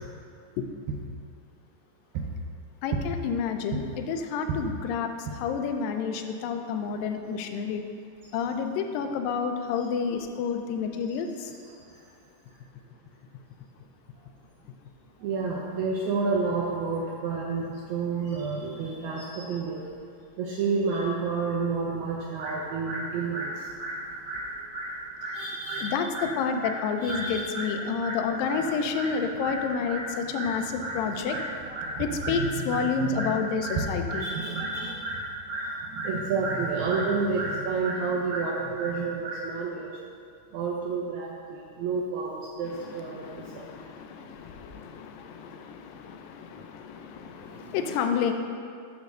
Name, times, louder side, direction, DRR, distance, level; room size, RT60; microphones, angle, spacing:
voice 1, 2.8-5.1 5.4-7.8 8.3-11.5 25.8-31.4 32.0-34.3 42.7-48.3, left 6 dB, 85° left, 6 dB, 2.2 m, -30 dB
voice 2, 15.2-19.8 20.4-26.4 26.6-27.7 28.0-28.7 28.9-39.9 40.5-43.2 43.5-43.7, right 4 dB, 80° right, -2 dB, 1.7 m, -30 dB
8.4 x 3.0 x 6.3 m, 2.3 s
omnidirectional pair, 3.9 m